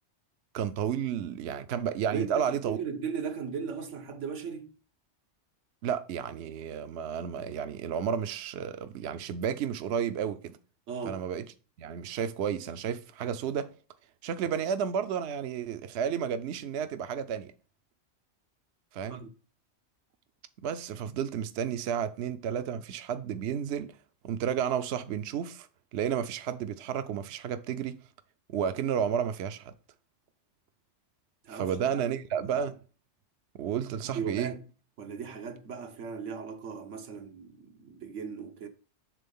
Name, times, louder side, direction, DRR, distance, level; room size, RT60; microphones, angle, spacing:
voice 1, 0.5-2.8 5.8-10.5 11.0-11.5 11.8-13.7 14.2-17.5 18.9-19.2 20.6-23.9 24.2-28.0 28.5-29.7 31.5-32.8 33.6-34.5, right 8 dB, 70° right, 0.8 m, -32 dB
voice 2, 2.1-4.7 10.9-11.2 19.1-19.3 31.4-31.8 32.0-32.5 34.0-34.6 35.0-38.7, right 6 dB, 90° right, 1.3 m, -37 dB
7.6 x 3.7 x 5.4 m
omnidirectional pair, 1.2 m